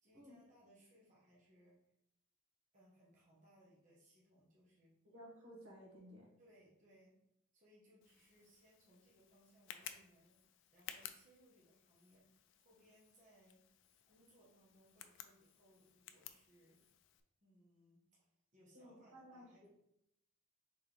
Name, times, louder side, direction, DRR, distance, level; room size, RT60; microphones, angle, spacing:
voice 1, 0.0-1.8 2.7-4.9 6.4-7.2 7.5-12.3 12.6-13.6 14.1-16.8 17.4-19.7, equal, 35° right, -5 dB, 1.0 m, -68 dB
voice 2, 5.0-6.3 18.7-19.7, equal, 80° right, -3 dB, 1.5 m, -57 dB
Tick, 8.0-17.2, left 10 dB, 60° left, 0.4 m, -57 dB
4.3 x 3.7 x 3.2 m, 0.81 s
head